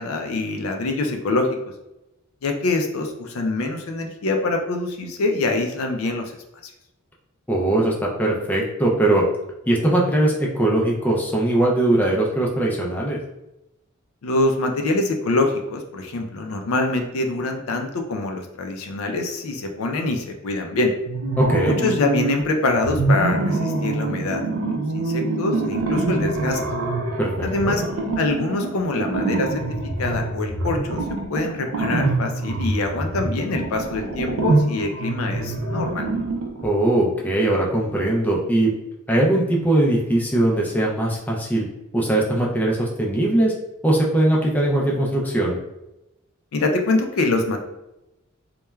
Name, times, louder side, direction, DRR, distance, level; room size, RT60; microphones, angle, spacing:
voice 1, 0.0-1.5 2.4-6.4 14.2-20.9 21.6-26.6 27.4-27.8 28.2-36.3 46.5-47.6, left 2 dB, 80° left, 4 dB, 0.4 m, -24 dB
voice 2, 7.5-9.2 9.7-13.2 21.4-21.8 27.2-27.7 36.6-38.7 39.1-41.7 41.9-43.5 43.8-45.6, right 1 dB, 10° left, -3 dB, 0.3 m, -20 dB
sound 1, 21.1-22.4 22.8-36.7, right 2 dB, 85° right, 0.4 m, -25 dB
3.0 x 2.2 x 2.2 m, 0.93 s
head